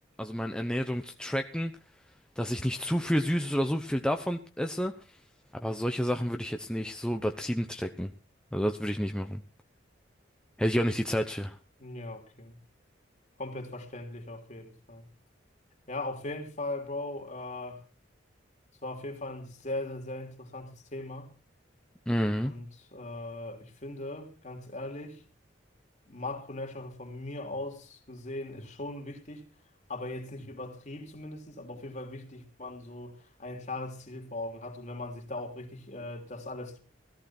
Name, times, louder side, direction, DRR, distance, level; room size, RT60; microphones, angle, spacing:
voice 1, 0.2-1.7 2.4-4.9 5.5-8.1 8.5-9.4 10.6-11.6 22.1-22.5, equal, 5° left, 0.9 m, -29 dB
voice 2, 11.8-12.6 13.4-15.1 15.9-17.9 18.8-21.3 22.4-25.2 26.1-29.5 29.9-36.8, left 2 dB, 40° left, 3.2 m, -39 dB
17.0 x 14.0 x 4.4 m
head